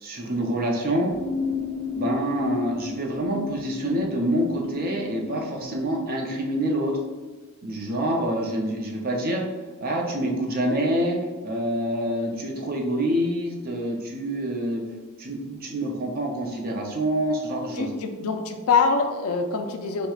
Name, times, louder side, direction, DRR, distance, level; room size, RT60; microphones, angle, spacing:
voice 1, 0.0-1.1 2.0-7.0 7.6-9.4 9.8-14.8 15.2-17.9, right 1 dB, 45° right, 0 dB, 0.5 m, -26 dB
sound 1, 1.1-6.4, left 4 dB, 30° left, 0.9 m, -32 dB
voice 2, 17.8-20.1, left 5 dB, 75° left, 5 dB, 0.4 m, -24 dB
4.4 x 2.1 x 2.3 m, 1.3 s
head